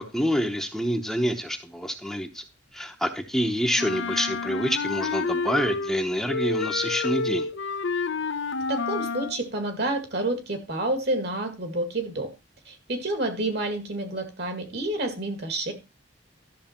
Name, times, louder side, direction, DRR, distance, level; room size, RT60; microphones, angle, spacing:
voice 1, 0.0-2.4 2.7-7.5, equal, ahead, 4 dB, 0.8 m, -27 dB
Wind instrument woodwind instrument, 3.8-6.0 6.3-9.4, left 4 dB, 75° left, 0.7 m, -29 dB
voice 2, 8.7-12.3 12.7-15.7, right 2 dB, 60° right, 7 dB, 2.1 m, -29 dB
12.5 x 6.3 x 4.4 m, 0.27 s
head